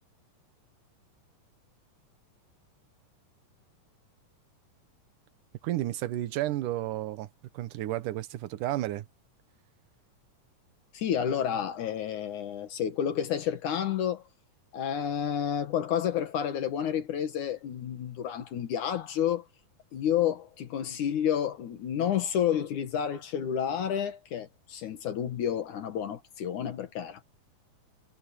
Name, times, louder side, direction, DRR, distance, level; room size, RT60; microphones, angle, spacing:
voice 1, 5.6-7.3 7.5-9.1, right 14 dB, 80° right, 2.6 m, -32 dB
voice 2, 10.9-14.3 14.7-19.5 19.9-27.2, left 9 dB, 70° left, 2.9 m, -30 dB
omnidirectional pair, 3.8 m